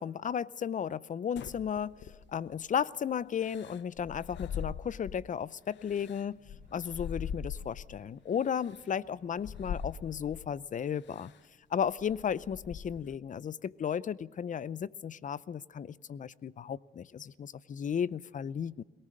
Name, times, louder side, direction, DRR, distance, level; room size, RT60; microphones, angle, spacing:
voice 1, 0.0-6.4 6.7-11.3 11.7-18.8, left 8 dB, 40° left, 21 dB, 0.6 m, -34 dB
sound 1, 1.4-2.5 3.4-5.3 5.8-8.0 8.6-8.8 9.4-10.5 11.1-11.4 11.8-13.2, left 7 dB, 65° left, 0.9 m, -42 dB
sound 2, 5.7-10.6 11.2-11.3, right 3 dB, 40° right, 4.8 m, -64 dB
22.0 x 19.0 x 6.5 m, 1.3 s
cardioid pair, 90°, 20 cm